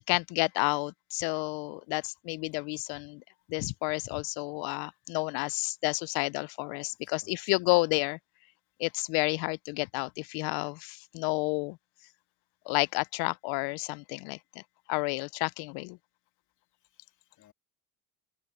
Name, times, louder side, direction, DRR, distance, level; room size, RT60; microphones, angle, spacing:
voice 1, 0.0-3.2 3.5-8.2 8.8-11.8 12.7-14.4 14.9-16.0, left 29 dB, 70° left, 0.5 m, -30 dB
voice 2, 7.0-7.8 9.3-9.5 10.5-10.6 16.7-17.5, left 12 dB, 50° left, 2.4 m, -63 dB
supercardioid pair, 85°, 39 cm